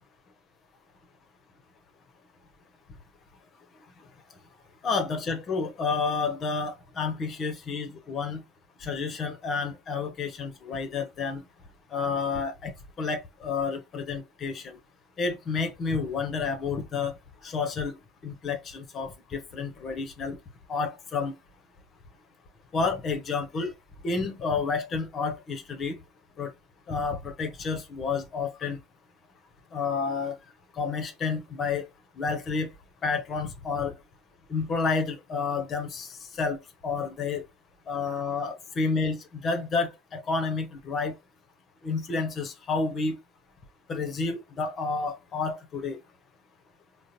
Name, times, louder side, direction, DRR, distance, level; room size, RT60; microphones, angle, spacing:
voice 1, 4.8-8.4 8.8-11.4 11.9-12.7 13.0-14.8 15.2-17.1 17.4-18.0 18.2-20.4 20.7-21.3 22.7-23.7 24.0-26.0 26.4-26.5 26.9-28.8 29.7-30.4 30.7-31.9 32.2-32.7 33.0-33.9 34.5-37.5 37.9-41.1 41.8-43.2 43.9-46.0, left 4 dB, 35° left, 0.8 m, -30 dB
3.8 x 2.1 x 2.9 m
figure-of-eight pair, 70°, 0 cm